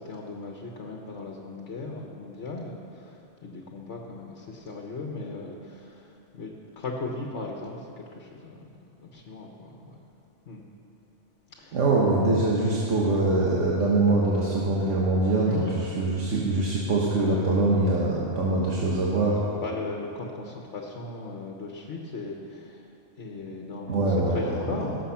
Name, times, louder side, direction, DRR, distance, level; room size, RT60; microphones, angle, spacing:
voice 1, 0.0-6.0 6.3-8.6 9.0-10.0 10.5-10.6 11.6-11.8 15.4-15.7 19.5-22.8 23.2-24.1 24.3-25.0, left 3 dB, 70° left, 0 dB, 1.4 m, -37 dB
voice 2, 11.7-19.5 23.9-24.8, right 2 dB, 85° right, -5 dB, 1.7 m, -23 dB
18.0 x 7.4 x 5.7 m, 2.6 s
omnidirectional pair, 1.2 m